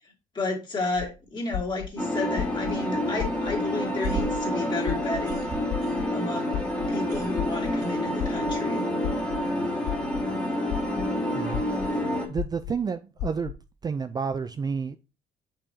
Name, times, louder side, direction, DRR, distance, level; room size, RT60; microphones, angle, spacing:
voice 1, 0.3-5.4 6.1-6.6 6.9-8.9, left 2 dB, 25° left, 2.5 m, -32 dB
sound 1, 1.0-1.1 1.5-1.9 2.4-2.7 3.2-3.6 4.0-4.4 4.9-5.2 5.7-6.1 6.5-6.9 7.4-7.7 8.2-8.6 9.0-9.4 9.9-10.2 10.7-11.1 11.5-11.9 12.4-12.7 13.2-13.5, left 12 dB, 65° left, 0.7 m, -32 dB
sound 2, 2.0-12.3, left 1 dB, 5° left, 1.9 m, -28 dB
sound 3, 3.8-6.4 6.7-8.6, right 7 dB, 70° right, 3.0 m, -39 dB
voice 2, 12.3-13.5 13.8-15.0, right 5 dB, 25° right, 0.4 m, -30 dB
6.8 x 5.8 x 2.8 m
cardioid pair, 110°, 17 cm